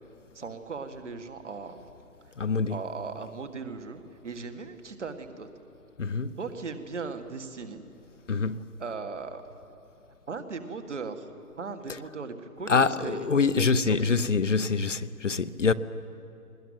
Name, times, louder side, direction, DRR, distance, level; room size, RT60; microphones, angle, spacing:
voice 1, 0.3-1.8 2.5-5.5 6.4-7.8 8.8-9.4 10.3-11.3 11.6-14.4, right 4 dB, 50° right, 2.0 m, -38 dB
voice 2, 2.4-2.8 6.0-6.3 8.3-8.6 12.7-15.7, left 5 dB, 50° left, 0.8 m, -25 dB
21.0 x 20.0 x 9.2 m
figure-of-eight pair, 150°, 46 cm